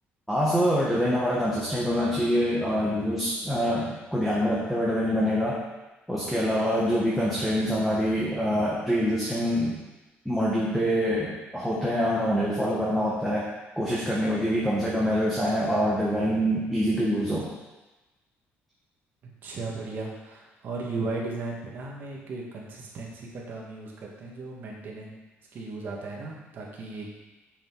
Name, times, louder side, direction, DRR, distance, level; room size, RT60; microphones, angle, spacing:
voice 1, 0.3-5.6 6.1-9.8 10.2-13.5 13.8-17.5, equal, ahead, -7 dB, 1.4 m, -25 dB
voice 2, 19.4-25.2 25.5-27.1, right 3 dB, 45° right, -2 dB, 1.9 m, -36 dB
7.0 x 5.7 x 4.8 m, 1.1 s
cardioid pair, 145°, 4 cm